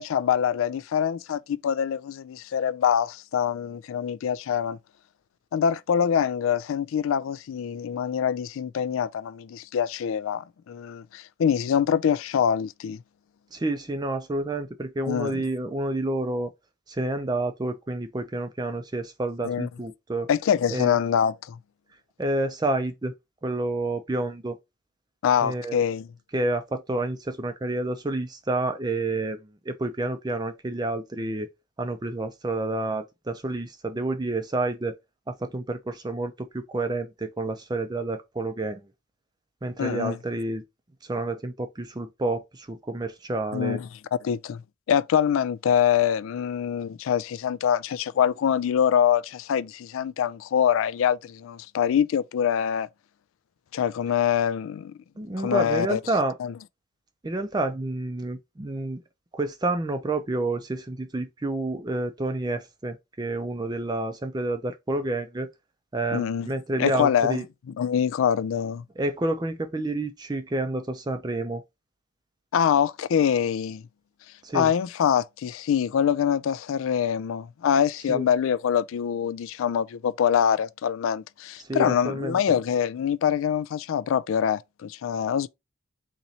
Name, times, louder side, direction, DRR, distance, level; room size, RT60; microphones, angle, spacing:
voice 1, 0.0-4.8 5.5-13.0 15.1-15.4 19.4-19.7 20.3-21.6 25.2-26.1 39.8-40.2 43.5-43.9 44.2-44.6 44.9-52.9 53.7-54.9 55.4-56.0 56.4-56.5 66.1-66.5 66.8-67.4 67.8-68.8 72.5-73.8 74.5-85.5, left 8 dB, 75° left, 0.3 m, -24 dB
voice 2, 13.5-16.5 16.9-20.3 20.7-21.0 22.2-23.1 23.4-24.6 25.4-25.8 26.3-31.5 31.8-34.9 35.3-38.9 39.6-40.6 41.0-43.8 55.2-56.4 57.2-59.0 59.3-65.5 65.9-67.5 69.0-71.6 74.4-74.7 78.1-78.3 81.6-82.6, right 2 dB, 20° right, 0.4 m, -29 dB
4.0 x 3.0 x 2.8 m
head